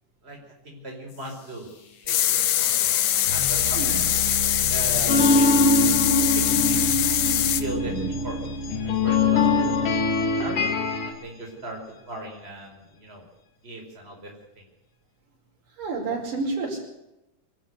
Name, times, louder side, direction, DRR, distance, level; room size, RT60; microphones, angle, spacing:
voice 1, 0.6-1.7 2.0-2.9 3.3-4.2 4.7-5.6 6.6-6.8 7.6-8.4 8.8-10.7 11.0-11.8 12.1-13.2 13.6-14.3, right 2 dB, 20° right, 0 dB, 5.1 m, -37 dB
sound 1, 1.1-11.9, right 1 dB, 45° left, 2.0 m, -36 dB
sound 2, 2.1-7.6, left 12 dB, 65° left, 1.7 m, -23 dB
sound 3, 5.1-11.1, left 3 dB, 85° left, 4.2 m, -23 dB
voice 2, 15.8-16.8, right 3 dB, 85° right, 1 dB, 6.6 m, -30 dB
24.5 x 13.0 x 8.3 m, 0.90 s
omnidirectional pair, 3.7 m